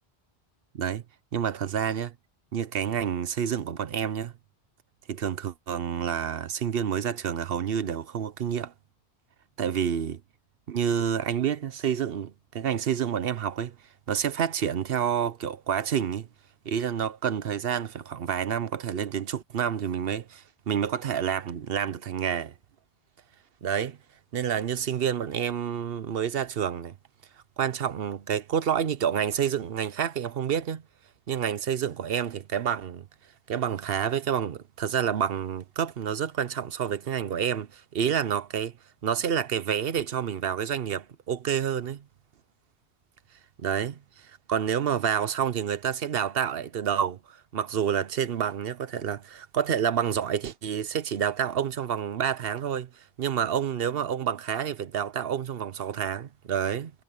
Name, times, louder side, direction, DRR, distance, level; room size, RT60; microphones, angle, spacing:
voice 1, 1.3-2.1 2.5-4.3 5.1-8.7 9.6-10.2 10.7-13.7 14.1-16.3 16.6-22.5 23.6-24.0 24.3-26.9 27.6-30.8 31.3-33.1 33.5-38.7 39.0-42.0 43.6-44.0 44.5-56.9, right 8 dB, 65° right, 1.0 m, -28 dB
omnidirectional pair, 1.1 m